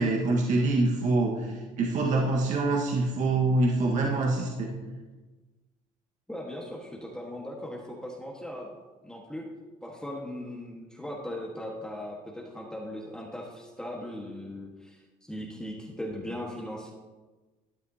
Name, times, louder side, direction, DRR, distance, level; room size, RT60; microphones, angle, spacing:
voice 1, 0.0-4.7, right 2 dB, 60° right, -1 dB, 1.6 m, -25 dB
voice 2, 6.3-8.7 9.0-9.5 9.8-15.0 15.3-16.9, left 1 dB, 5° left, -2 dB, 1.5 m, -38 dB
13.0 x 9.6 x 2.9 m, 1.3 s
supercardioid pair, 90°, 14 cm